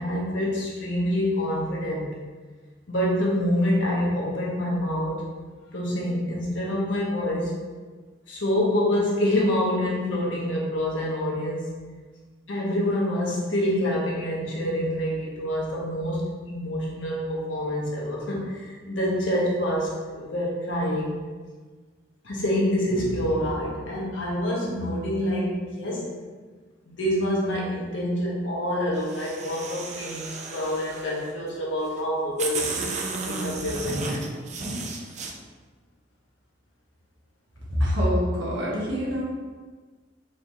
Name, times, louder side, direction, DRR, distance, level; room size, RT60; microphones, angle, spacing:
voice 1, 0.0-2.1 2.9-5.3 5.7-7.6 8.3-11.7 12.5-21.1 22.2-26.1 26.9-32.7 33.2-34.2, left 1 dB, 70° left, -4 dB, 1.2 m, -26 dB
sound 1, 29.0-31.3 32.0-32.1 32.4-35.3, right 3 dB, 40° right, 0.5 m, -33 dB
voice 2, 37.7-39.2, equal, 75° right, -6 dB, 1.4 m, -25 dB
4.8 x 3.2 x 3.6 m, 1.4 s
head